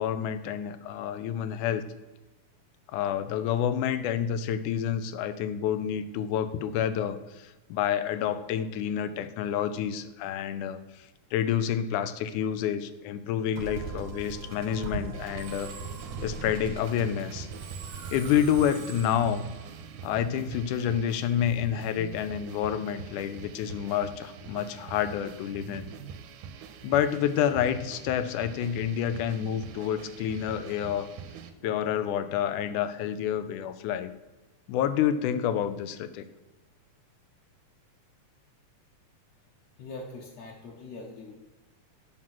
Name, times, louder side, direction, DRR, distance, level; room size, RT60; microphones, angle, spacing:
voice 1, 0.0-1.9 2.9-15.7 16.2-17.5 18.1-19.4 20.0-25.9 26.8-31.1 31.6-34.1 34.7-36.2, left 9 dB, 85° left, 11 dB, 2.1 m, -29 dB
Musical instrument, 13.6-20.9, right 4 dB, 65° right, 2.3 m, -41 dB
sound 1, 15.1-31.5, right 6 dB, 90° right, 2.2 m, -44 dB
voice 2, 39.8-41.3, left 2 dB, 65° left, -3 dB, 2.2 m, -42 dB
7.7 x 6.0 x 5.8 m, 1.1 s
omnidirectional pair, 3.5 m